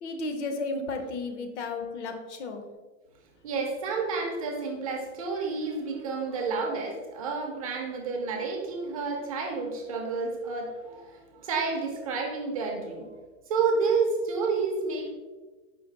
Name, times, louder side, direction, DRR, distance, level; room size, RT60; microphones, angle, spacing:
voice 1, 0.0-2.6, left 3 dB, 75° left, 6 dB, 0.8 m, -33 dB
voice 2, 3.4-13.1 13.5-15.1, right 4 dB, 30° right, 1 dB, 0.4 m, -30 dB
5.0 x 2.2 x 3.8 m, 1.2 s
supercardioid pair, 175°, 36 cm